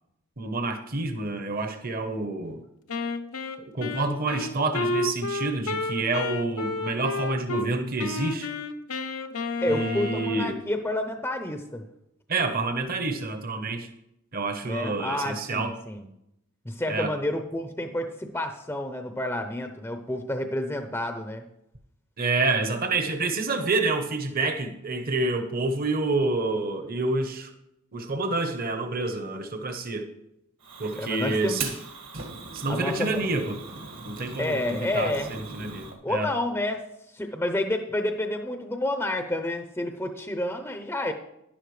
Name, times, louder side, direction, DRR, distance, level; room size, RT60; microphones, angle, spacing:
voice 1, 0.4-2.6 3.7-8.5 9.7-10.6 12.3-13.9 14.3-15.7 16.9-17.1 22.2-27.5 27.9-30.1 30.8-31.7 32.5-33.6 34.0-36.3, right 3 dB, 40° right, 6 dB, 0.9 m, -28 dB
Wind instrument woodwind instrument, 2.9-7.7 8.0-10.6, left 3 dB, 80° left, 0.8 m, -31 dB
voice 2, 9.6-11.8 14.6-16.1 16.6-21.4 31.0-31.6 32.7-33.2 34.4-35.3 36.0-41.1, left 1 dB, 10° left, 5 dB, 0.6 m, -29 dB
Fire, 30.6-35.9, right 4 dB, 70° right, 1.9 m, -39 dB
11.5 x 11.0 x 3.2 m, 0.82 s
head